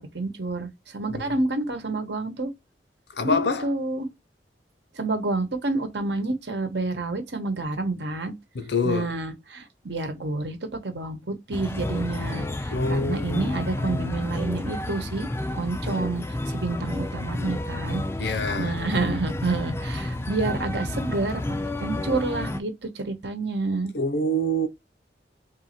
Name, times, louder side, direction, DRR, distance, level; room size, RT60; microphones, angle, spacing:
voice 1, 0.1-2.5 3.2-4.1 4.9-8.3 8.8-10.6 10.8-15.3 15.5-21.4 21.8-23.9, right 2 dB, 80° right, 1.1 m, -29 dB
voice 2, 3.2-3.7 8.5-9.1 12.7-14.0 18.2-18.8 23.9-24.7, left 1 dB, 75° left, 0.7 m, -26 dB
sound 1, 11.5-22.6, left 2 dB, 15° left, 0.3 m, -31 dB
3.5 x 2.7 x 4.2 m
head